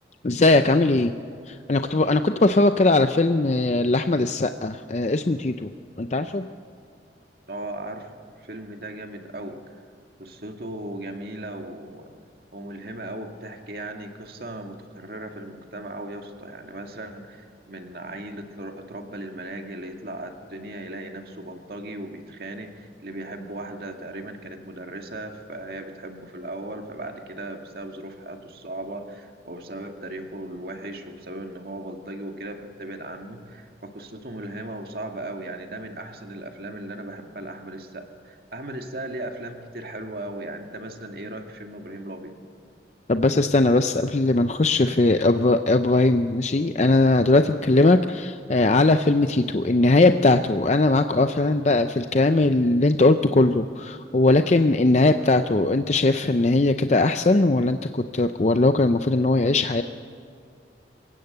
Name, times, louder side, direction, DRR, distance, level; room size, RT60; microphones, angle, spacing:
voice 1, 0.2-1.1 1.5-5.7 6.0-6.4 43.1-59.8, left 2 dB, 40° left, 8 dB, 0.5 m, -20 dB
voice 2, 7.5-8.1 8.4-9.6 10.2-12.1 12.5-42.3, right 1 dB, 55° right, 4 dB, 2.0 m, -37 dB
27.0 x 16.5 x 8.0 m, 2.3 s
head